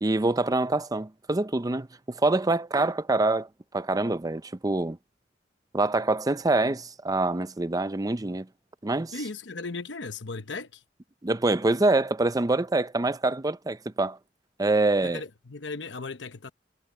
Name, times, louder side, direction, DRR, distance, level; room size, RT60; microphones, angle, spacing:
voice 1, 0.0-3.5 3.7-5.0 5.7-8.5 8.8-9.1 11.2-14.2 14.6-15.2, right 2 dB, 20° right, 0.6 m, -25 dB
voice 2, 9.1-10.8 15.0-16.5, left 3 dB, 75° left, 1.0 m, -36 dB
head